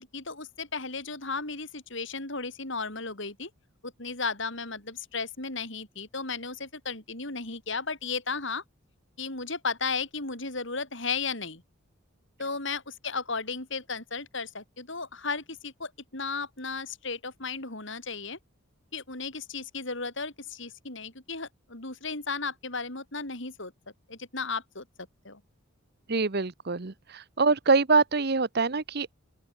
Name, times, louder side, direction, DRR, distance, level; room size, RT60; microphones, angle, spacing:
voice 1, 0.0-3.5 3.8-8.6 9.2-11.6 12.4-18.4 18.9-23.7 24.1-24.9 25.2-25.4, left 4 dB, 60° left, 4.8 m, -34 dB
voice 2, 26.1-29.1, right 4 dB, 50° right, 0.9 m, -25 dB
open air
head